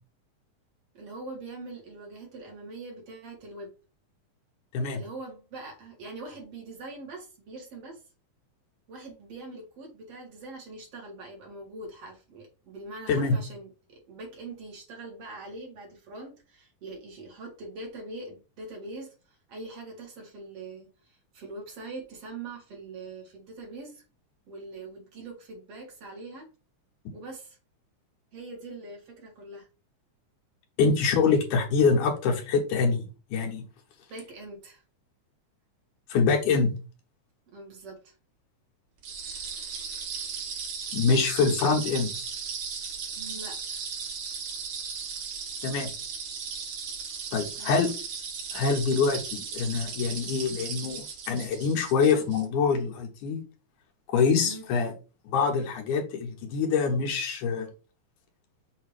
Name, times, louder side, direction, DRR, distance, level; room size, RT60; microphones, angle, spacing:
voice 1, 0.9-3.7 4.9-8.0 8.9-24.0 24.5-26.5 27.1-27.6 28.3-29.7 34.1-34.8 37.5-38.1 43.2-43.8 47.6-47.9 54.4-54.6, right 2 dB, 55° right, 0 dB, 2.6 m, -43 dB
voice 2, 30.8-33.6 36.1-36.7 40.9-42.1 45.6-45.9 47.3-47.9 48.5-53.4 54.1-54.9 55.2-57.7, left 5 dB, 85° left, 2 dB, 2.7 m, -25 dB
sound 1, 39.0-52.5, right 6 dB, 80° right, 3.2 m, -36 dB
6.7 x 2.9 x 4.9 m, 0.34 s
omnidirectional pair, 3.5 m